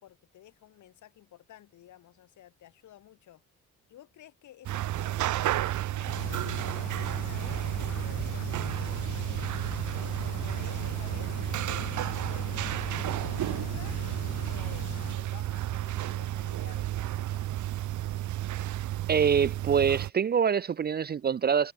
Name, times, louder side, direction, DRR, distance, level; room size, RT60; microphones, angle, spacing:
voice 1, 0.0-3.4 3.9-5.5 5.9-7.7 8.0-9.5 10.0-14.0 14.5-17.5, left 12 dB, 75° left, 3.9 m, -53 dB
sound 1, 4.6-20.1, right 13 dB, 75° right, 1.3 m, -32 dB
sound 2, 6.1-15.2, left 10 dB, 55° left, 1.1 m, -41 dB
voice 2, 19.1-21.7, right 7 dB, 35° right, 0.5 m, -25 dB
cardioid pair, 90°, 30 cm